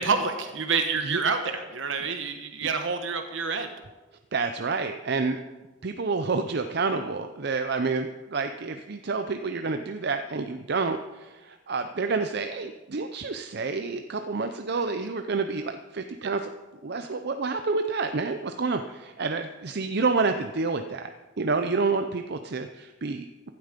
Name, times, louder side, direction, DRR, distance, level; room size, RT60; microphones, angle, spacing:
voice 1, 0.0-3.7 15.0-15.1 16.2-16.3, right 5 dB, 80° right, 6 dB, 1.2 m, -28 dB
voice 2, 4.3-5.4 5.8-16.5 16.8-23.5, right 4 dB, 60° right, 7 dB, 0.7 m, -29 dB
15.5 x 11.5 x 5.2 m, 1.2 s
head